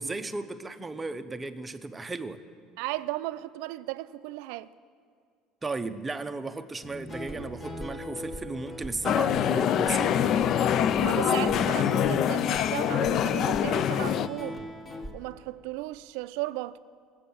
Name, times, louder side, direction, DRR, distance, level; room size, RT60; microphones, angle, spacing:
voice 1, 0.0-2.4 5.6-10.4 11.1-11.5, right 3 dB, 15° right, 0.6 m, -35 dB
voice 2, 2.8-4.7 11.0-14.6 15.1-16.8, right 18 dB, 85° right, 0.4 m, -35 dB
Guitar, 6.8-15.1, equal, 20° left, 1.2 m, -40 dB
sound 1, 9.0-14.3, left 9 dB, 45° left, 0.4 m, -25 dB
18.5 x 7.7 x 6.8 m
cardioid pair, 145°, 0 cm